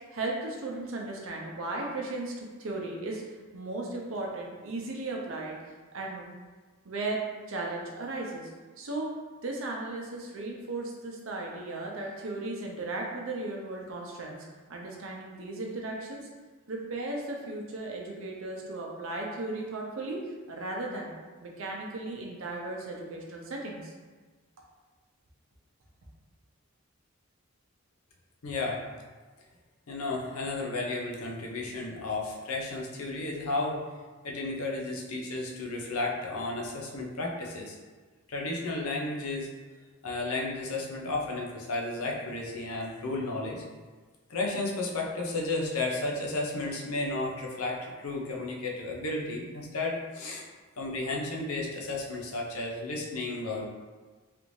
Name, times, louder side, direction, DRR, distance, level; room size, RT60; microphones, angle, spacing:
voice 1, 0.1-3.2 3.5-5.6 5.9-6.2 6.9-7.2 7.5-8.5 8.8-9.1 9.4-16.3 16.7-20.2 20.5-21.1 21.4-23.9, right 2 dB, 65° right, -1 dB, 0.6 m, -36 dB
voice 2, 28.4-28.8 29.9-33.8 34.2-37.8 38.3-39.5 40.0-43.6 44.3-50.4 50.8-53.7, left 2 dB, 85° left, -1 dB, 0.6 m, -33 dB
3.3 x 2.6 x 3.1 m, 1.4 s
head